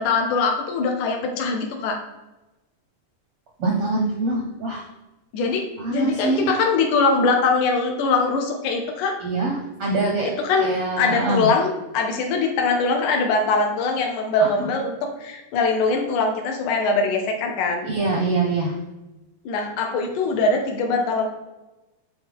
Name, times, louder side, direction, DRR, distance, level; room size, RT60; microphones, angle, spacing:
voice 1, 0.0-2.0 5.3-9.2 10.4-17.9 19.5-21.3, left 3 dB, 75° left, 2 dB, 2.2 m, -22 dB
voice 2, 3.6-4.8 5.8-6.5 9.2-10.3 10.6-11.5 17.8-18.7, right 2 dB, 70° right, -2 dB, 1.4 m, -24 dB
10.5 x 3.8 x 3.5 m, 1.0 s
omnidirectional pair, 3.8 m